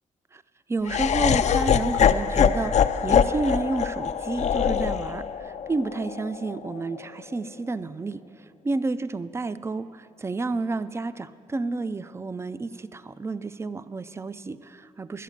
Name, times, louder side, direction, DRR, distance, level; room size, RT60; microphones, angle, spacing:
voice 1, 0.7-15.2, right 3 dB, 20° right, 15 dB, 0.4 m, -30 dB
Laughter, 0.9-7.0, left 8 dB, 60° left, 0.4 m, -23 dB
11.5 x 8.4 x 7.3 m, 2.7 s
cardioid pair, 85°, 13 cm